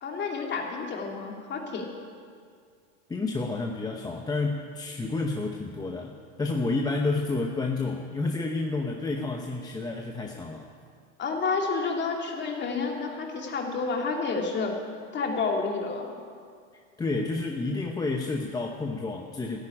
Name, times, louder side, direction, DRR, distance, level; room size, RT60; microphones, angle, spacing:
voice 1, 0.0-1.9 11.2-14.8 15.1-16.1, left 4 dB, 30° left, 1 dB, 2.6 m, -30 dB
voice 2, 3.1-10.7 16.7-19.6, left 3 dB, 10° left, 2 dB, 0.8 m, -30 dB
13.0 x 9.9 x 9.9 m, 2.2 s
supercardioid pair, 125°, 37 cm